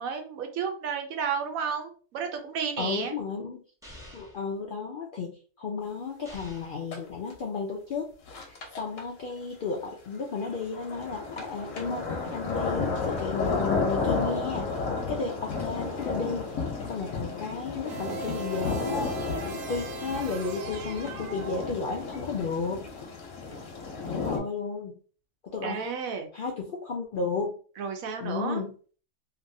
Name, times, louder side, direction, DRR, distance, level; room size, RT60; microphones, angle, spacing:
voice 1, 0.0-3.1 25.6-26.3 27.8-28.6, right 6 dB, 85° right, 5 dB, 1.1 m, -32 dB
voice 2, 2.8-3.6 4.1-8.1 8.5-14.7 15.1-19.1 19.4-22.9 24.0-25.0 25.5-26.0 26.3-27.6 28.2-28.8, left 4 dB, 70° left, 0 dB, 0.5 m, -33 dB
sound 1, 3.8-4.4 6.3-6.9, left 1 dB, 5° right, 0.5 m, -47 dB
sound 2, 6.9-7.0 7.3-7.4 8.3-9.0 10.2-24.4, left 4 dB, 85° left, 1.2 m, -32 dB
sound 3, 17.9-22.2, right 5 dB, 70° right, 0.8 m, -39 dB
2.9 x 2.6 x 2.6 m, 0.40 s
omnidirectional pair, 1.4 m